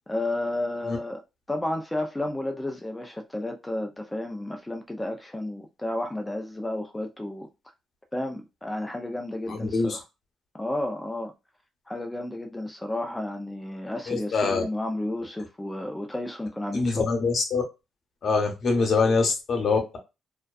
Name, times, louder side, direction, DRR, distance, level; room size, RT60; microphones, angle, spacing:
voice 1, 0.1-1.2 1.5-7.5 8.1-10.0 10.5-11.3 11.9-17.0, left 1 dB, 10° left, 0.4 m, -32 dB
voice 2, 9.5-10.0 14.1-14.6 16.7-17.6 18.2-20.0, left 4 dB, 55° left, 0.8 m, -24 dB
2.5 x 2.2 x 2.3 m
cardioid pair, 90°, 0 cm